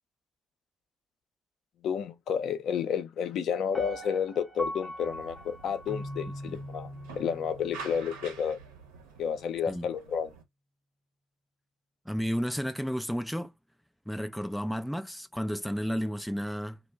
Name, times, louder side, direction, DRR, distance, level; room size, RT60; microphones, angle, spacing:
voice 1, 1.8-8.6 9.2-10.3, left 7 dB, 60° left, 0.6 m, -31 dB
Piano, 3.7-6.8 7.3-7.4, equal, 20° left, 0.8 m, -41 dB
sound 1, 5.0-10.4, right 5 dB, 80° right, 0.7 m, -48 dB
Keyboard (musical), 5.9-8.8, equal, 50° right, 0.7 m, -43 dB
voice 2, 12.1-13.5 14.1-16.8, equal, ahead, 0.3 m, -32 dB
2.2 x 2.0 x 3.3 m
hypercardioid pair, 60°, 0 cm